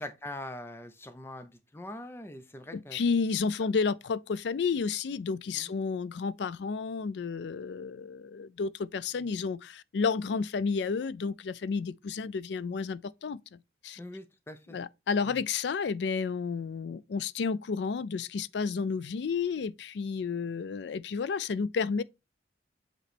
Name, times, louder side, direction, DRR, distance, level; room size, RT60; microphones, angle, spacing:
voice 1, 0.0-3.0 5.5-5.8 14.0-14.8 15.3-15.4, left 1 dB, 15° left, 0.5 m, -43 dB
voice 2, 2.7-14.0 14.7-22.0, left 5 dB, 70° left, 0.4 m, -31 dB
8.0 x 3.1 x 4.1 m
head